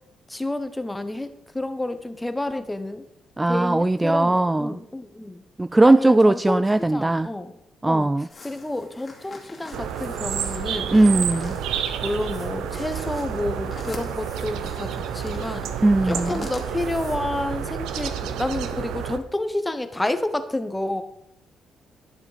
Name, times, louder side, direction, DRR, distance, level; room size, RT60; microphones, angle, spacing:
voice 1, 0.3-3.0 3.5-5.4 5.8-6.6 6.9-7.5 7.8-8.1 8.4-10.9 12.0-15.7 16.0-21.0, left 1 dB, 10° left, 9 dB, 1.1 m, -29 dB
voice 2, 3.4-4.8 5.6-7.3 7.8-8.3 10.9-11.6 15.8-16.5, right 2 dB, 15° right, 14 dB, 0.3 m, -19 dB
sound 1, 8.3-17.2, left 3 dB, 30° left, 2.6 m, -43 dB
sound 2, 9.7-19.2, right 8 dB, 90° right, 0.8 m, -30 dB
11.5 x 6.9 x 5.1 m, 0.78 s
cardioid pair, 90°, 0 cm